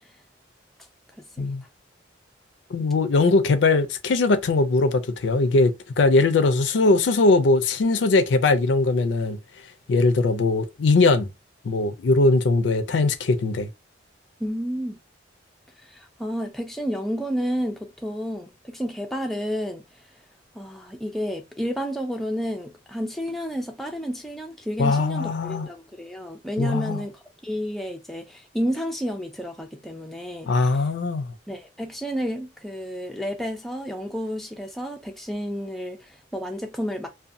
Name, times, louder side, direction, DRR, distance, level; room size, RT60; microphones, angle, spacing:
voice 1, 1.2-1.5 14.4-15.0 15.8-20.1 20.5-30.8 31.5-37.1, equal, ahead, 0.3 m, -31 dB
voice 2, 2.7-9.4 9.9-11.3 11.6-13.7 24.8-25.7 26.6-27.0 30.5-31.3, left 3 dB, 70° left, 0.4 m, -20 dB
2.6 x 2.2 x 2.5 m
head